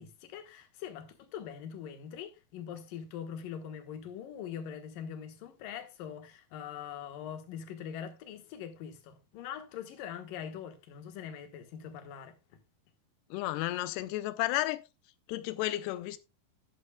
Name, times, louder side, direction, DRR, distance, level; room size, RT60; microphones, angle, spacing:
voice 1, 0.0-12.6, left 8 dB, 65° left, 2.7 m, -43 dB
voice 2, 13.3-14.8 15.3-16.2, left 16 dB, 90° left, 2.7 m, -32 dB
11.0 x 11.0 x 2.2 m
omnidirectional pair, 4.6 m